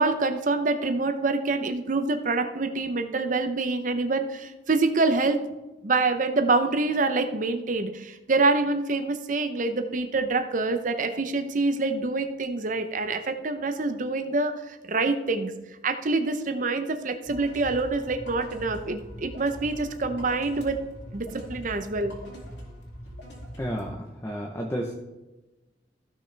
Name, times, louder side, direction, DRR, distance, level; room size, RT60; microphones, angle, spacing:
voice 1, 0.0-5.4 5.8-15.5 15.8-20.8 21.1-22.1, right 3 dB, 45° right, 8 dB, 0.7 m, -26 dB
sound 1, 17.3-23.9, equal, 75° left, 2.5 m, -42 dB
voice 2, 23.6-24.0 24.2-24.9, equal, 15° left, 0 dB, 0.8 m, -31 dB
14.5 x 6.2 x 3.4 m, 1.1 s
head